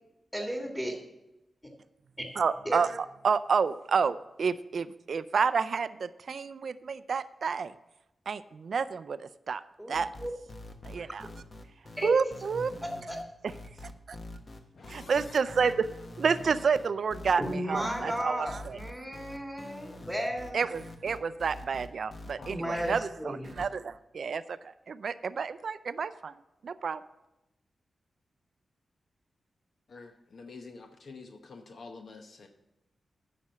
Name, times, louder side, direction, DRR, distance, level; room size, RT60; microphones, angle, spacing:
voice 1, 0.3-0.9 2.7-2.8 9.8-10.3 12.0-12.1 12.8-13.2 17.4-20.6 22.5-23.5, equal, 5° left, 1 dB, 1.8 m, -34 dB
voice 2, 2.4-7.7 8.3-9.6 9.9-10.1 10.9-11.3 12.0-12.7 13.4-13.5 14.1-14.2 14.9-15.9 16.2-18.8 20.5-26.3 26.6-27.0, right 5 dB, 70° right, 14 dB, 0.4 m, -30 dB
sound 1, 9.9-23.0 23.4-23.7, left 1 dB, 45° left, 1.2 m, -45 dB
voice 3, 14.7-15.4 22.4-23.0 29.9-32.5, left 4 dB, 70° left, 5 dB, 0.9 m, -48 dB
9.7 x 6.0 x 7.4 m, 0.94 s
cardioid pair, 80°, 0 cm